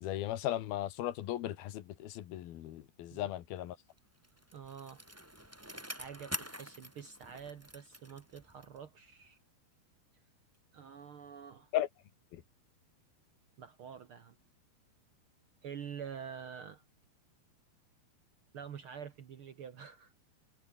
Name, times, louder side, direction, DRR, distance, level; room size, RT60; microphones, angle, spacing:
voice 1, 0.0-3.8 11.7-11.9 12.3-12.4, left 13 dB, 70° left, 3.2 m, -36 dB
Bicycle, 4.0-8.9 9.2-9.3, equal, 5° right, 3.9 m, -46 dB
voice 2, 4.5-5.0 5.9-9.4 10.7-11.7 13.6-14.4 15.6-16.8 18.5-20.1, right 7 dB, 80° right, 1.2 m, -47 dB
omnidirectional pair, 4.7 m